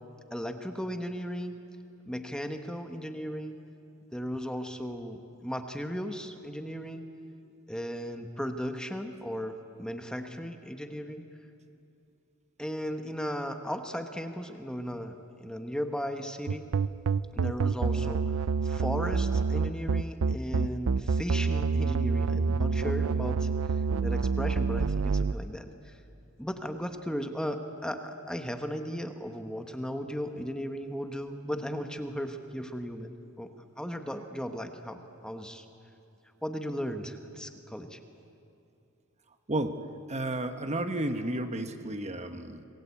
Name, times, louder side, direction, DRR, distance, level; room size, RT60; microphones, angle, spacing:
voice 1, 0.3-1.6 2.1-3.6 4.1-7.0 7.7-11.2 12.6-16.7 17.4-18.2 18.6-23.5 24.0-25.7 26.4-33.5 33.8-35.6 36.4-38.0, equal, 5° left, 6 dB, 1.2 m, -36 dB
sound 1, 16.5-25.3, right 5 dB, 75° right, 0.5 m, -27 dB
voice 2, 39.5-39.8 40.1-42.6, right 1 dB, 30° right, 7 dB, 1.1 m, -32 dB
26.0 x 20.5 x 8.4 m, 2.7 s
head